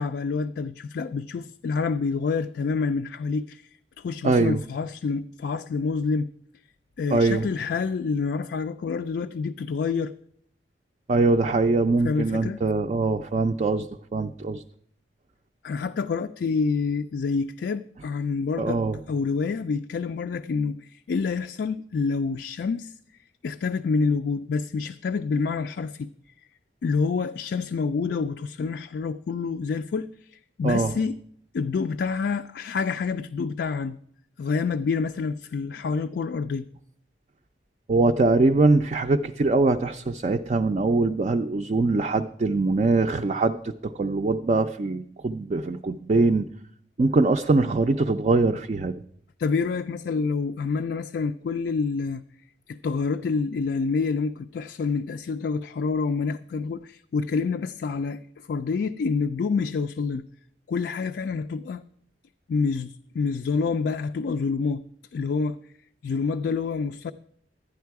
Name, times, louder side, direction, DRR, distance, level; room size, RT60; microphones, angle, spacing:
voice 1, 0.0-3.7 4.0-6.3 7.0-10.1 12.0-12.6 15.6-18.8 19.1-22.9 23.4-26.1 26.8-31.2 31.5-34.0 34.4-36.7 49.4-52.2 52.7-60.3 60.7-61.8 62.5-64.8 65.1-65.6 66.0-67.1, left 4 dB, 65° left, 0.3 m, -27 dB
voice 2, 4.2-4.6 7.1-7.4 11.1-14.6 18.6-19.0 30.6-30.9 37.9-43.6 43.8-46.5 47.0-48.9, right 3 dB, 40° right, 0.4 m, -22 dB
11.5 x 9.5 x 4.6 m
head